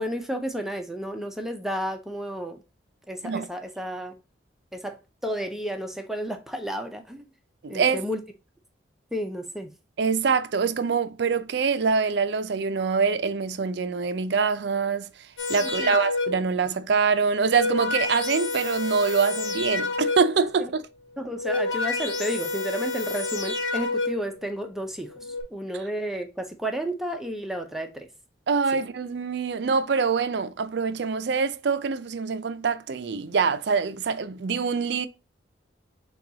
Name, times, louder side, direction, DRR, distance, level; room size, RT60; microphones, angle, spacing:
voice 1, 0.0-2.6 3.1-4.1 4.7-5.0 5.2-7.3 7.7-8.2 9.1-9.7 15.8-16.0 20.6-20.7 21.2-25.1 25.5-28.1, equal, ahead, 0.5 m, -32 dB
voice 2, 7.6-8.0 10.0-15.1 15.5-20.8 28.5-35.1, right 5 dB, 60° right, 0.4 m, -24 dB
sound 1, 15.4-16.6 17.3-20.5 21.2-24.4 25.1-25.4, left 3 dB, 80° left, 1.0 m, -29 dB
6.6 x 2.3 x 2.7 m
head